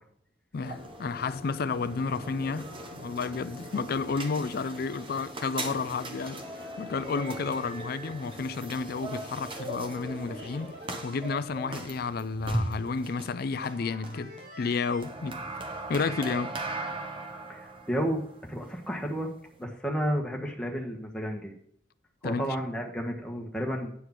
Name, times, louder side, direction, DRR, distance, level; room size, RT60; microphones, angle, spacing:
voice 1, 0.5-6.4 6.8-10.7 11.0-15.4 15.9-16.6 22.2-22.5, left 4 dB, 55° left, 0.4 m, -31 dB
sound 1, 0.6-19.6, right 2 dB, 30° right, 1.1 m, -39 dB
sound 2, 6.1-7.9 9.8-11.5 13.5-15.1, left 1 dB, 60° right, 2.9 m, -48 dB
voice 2, 17.5-18.2 18.5-19.3 19.6-21.6 22.2-23.9, equal, 5° left, 1.5 m, -31 dB
9.7 x 4.9 x 5.9 m
head